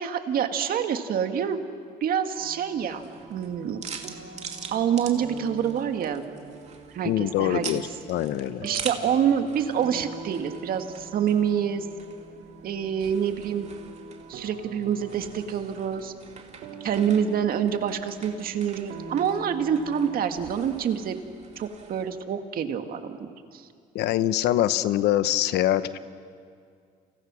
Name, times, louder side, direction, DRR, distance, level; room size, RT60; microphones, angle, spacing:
voice 1, 0.0-1.6 2.0-3.0 3.3-3.8 4.7-6.3 6.9-7.6 8.6-11.9 12.6-13.7 14.3-16.1 16.8-21.2 21.6-23.6, right 8 dB, 60° right, 6 dB, 2.0 m, -26 dB
sound 1, 2.3-20.8, right 5 dB, 85° right, 2.9 m, -44 dB
sound 2, 2.7-22.1, right 6 dB, 40° right, 2.7 m, -44 dB
voice 2, 7.0-8.7 23.9-26.0, left 13 dB, 80° left, 13 dB, 1.0 m, -24 dB
30.0 x 30.0 x 6.3 m, 2.3 s
cardioid pair, 110°, 17 cm